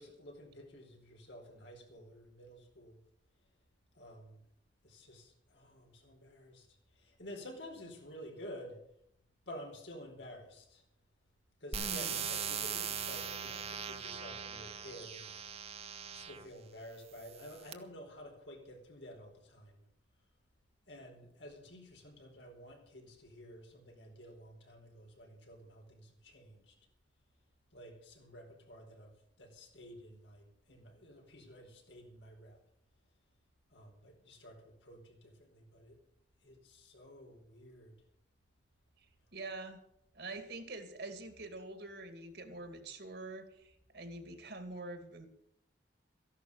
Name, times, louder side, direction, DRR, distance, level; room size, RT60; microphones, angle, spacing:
voice 1, 0.0-3.0 3.9-4.4 4.8-8.8 9.5-10.8 11.6-15.4 16.1-19.8 20.9-26.8 27.7-32.6 33.7-36.0 36.4-38.0, equal, 80° left, 2 dB, 4.6 m, -51 dB
sound 1, 11.7-16.5 17.2-17.7, right 7 dB, 35° right, 1.2 m, -40 dB
voice 2, 11.7-12.2 39.3-39.8 40.1-45.3, right 2 dB, 65° right, 8 dB, 2.5 m, -45 dB
14.5 x 11.5 x 6.8 m, 0.74 s
head